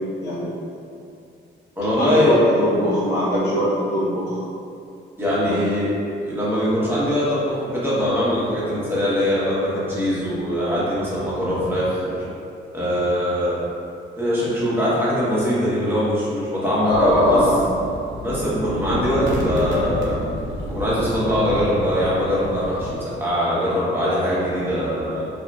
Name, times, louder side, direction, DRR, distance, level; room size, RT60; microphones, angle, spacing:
voice 1, 0.2-0.6 2.0-4.4 5.4-5.6 16.8-17.6, left 1 dB, 55° left, -10 dB, 0.7 m, -20 dB
voice 2, 1.8-2.3 5.2-5.9 6.2-12.3 12.7-13.6 14.2-17.4 18.2-20.2 20.7-25.3, equal, 10° right, -9 dB, 0.9 m, -22 dB
sound 1, 16.9-23.0, equal, 70° right, 0.6 m, -30 dB
2.7 x 2.5 x 2.2 m, 2.5 s
cardioid pair, 90°, 20 cm